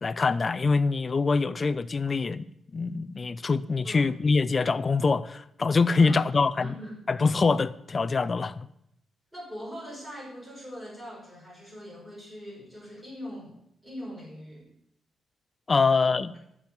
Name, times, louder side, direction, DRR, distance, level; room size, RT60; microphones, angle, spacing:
voice 1, 0.0-2.5 2.7-6.7 7.1-8.7 15.7-16.3, left 4 dB, 25° left, 0.5 m, -24 dB
voice 2, 6.0-7.0 9.3-14.7 15.8-16.2, equal, 10° right, 5.6 m, -42 dB
13.0 x 6.1 x 8.9 m
wide cardioid pair, 155°, 0 cm